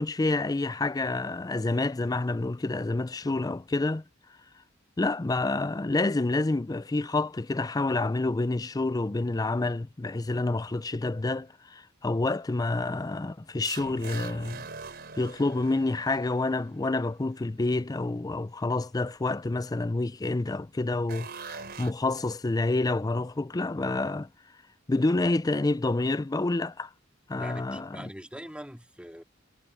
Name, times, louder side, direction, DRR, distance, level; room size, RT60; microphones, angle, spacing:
voice 1, 0.0-4.0 5.0-14.7 15.2-24.3 24.9-26.9 27.3-28.1, left 2 dB, 20° left, 0.4 m, -28 dB
sound 1, 13.6-17.0 21.1-21.9, right 5 dB, 55° right, 4.5 m, -42 dB
voice 2, 27.4-29.2, equal, 5° right, 2.2 m, -43 dB
head